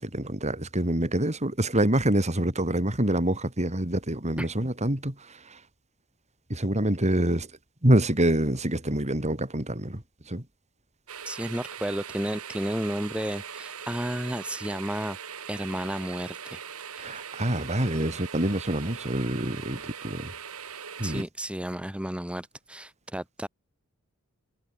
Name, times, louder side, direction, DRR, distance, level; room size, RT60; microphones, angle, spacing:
voice 1, 0.0-5.6 6.5-7.5 7.8-10.4 17.0-20.3 21.0-21.2, right 1 dB, 30° right, 4.2 m, -26 dB
sound 1, 11.1-21.2, right 7 dB, 75° right, 3.0 m, -41 dB
voice 2, 11.3-15.2 15.5-16.6 16.9-17.2 21.0-23.5, equal, 5° right, 1.9 m, -32 dB
head